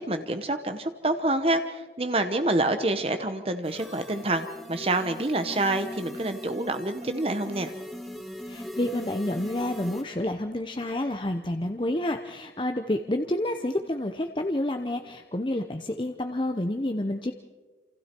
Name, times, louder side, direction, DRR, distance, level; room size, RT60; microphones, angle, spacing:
voice 1, 0.0-7.7, right 2 dB, 35° right, 8 dB, 1.0 m, -27 dB
sound 1, 3.6-10.0, left 1 dB, ahead, 2.2 m, -39 dB
voice 2, 8.5-17.3, left 1 dB, 30° left, 6 dB, 0.8 m, -29 dB
28.0 x 27.5 x 4.5 m, 1.3 s
head